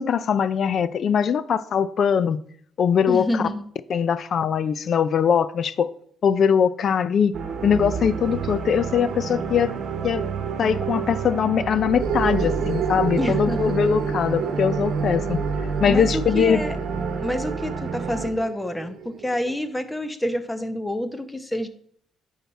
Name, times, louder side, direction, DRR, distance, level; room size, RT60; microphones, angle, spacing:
voice 1, 0.0-2.4 2.8-3.4 3.9-5.9 6.2-7.3 7.6-10.3 10.6-15.4 15.8-16.6, left 7 dB, 50° left, 0.5 m, -21 dB
voice 2, 3.1-3.6 13.2-13.8 15.9-16.8 17.2-21.7, left 1 dB, 10° left, 0.8 m, -28 dB
sound 1, 7.3-18.3, right 5 dB, 55° right, 1.2 m, -28 dB
sound 2, 12.0-19.6, right 7 dB, 75° right, 1.0 m, -32 dB
9.2 x 5.6 x 4.2 m
cardioid pair, 130°, 0 cm